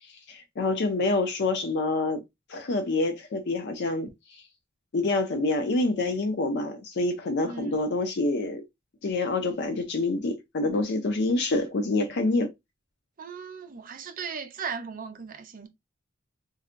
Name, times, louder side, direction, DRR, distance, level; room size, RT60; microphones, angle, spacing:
voice 1, 0.3-2.2 2.5-4.1 4.9-8.6 9.0-12.5, left 2 dB, 60° left, 0.5 m, -27 dB
voice 2, 7.4-7.8 13.2-15.7, right 6 dB, 45° right, 0.5 m, -37 dB
3.9 x 2.1 x 2.5 m
head